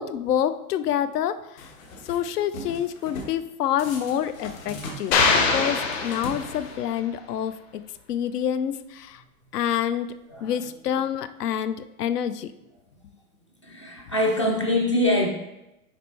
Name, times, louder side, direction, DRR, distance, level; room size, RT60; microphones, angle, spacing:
voice 1, 0.0-1.7 2.0-5.2 5.5-7.8 8.1-9.2 9.5-10.2 10.4-12.5, left 9 dB, 80° left, 13 dB, 0.6 m, -27 dB
sound 1, 1.6-2.2 2.5-3.4 3.8-7.0, left 1 dB, 60° left, 1.5 m, -40 dB
sound 2, 5.1-6.8, left 4 dB, 40° left, 1.2 m, -23 dB
voice 2, 13.6-15.3, left 1 dB, 20° left, 0 dB, 0.3 m, -23 dB
6.6 x 5.2 x 3.2 m, 0.92 s
hypercardioid pair, 155°, 46 cm